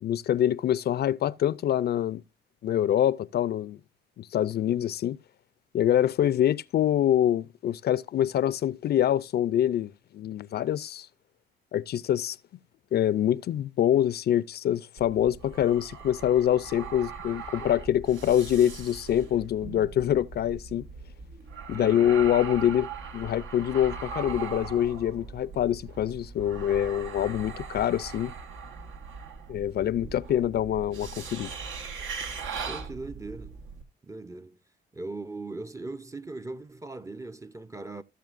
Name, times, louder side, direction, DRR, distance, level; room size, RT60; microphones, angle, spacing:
voice 1, 0.0-2.2 2.6-3.8 4.2-5.2 5.7-11.1 11.7-12.4 12.9-20.9 21.7-22.9 23.1-28.3 29.5-31.5, left 11 dB, 55° left, 0.4 m, -25 dB
sound 1, 15.0-33.8, right 5 dB, 75° right, 1.2 m, -40 dB
voice 2, 21.7-22.2 32.7-33.6 34.0-34.6 34.9-38.0, right 3 dB, 15° right, 0.5 m, -39 dB
15.0 x 6.8 x 2.5 m
cardioid pair, 90°, 20 cm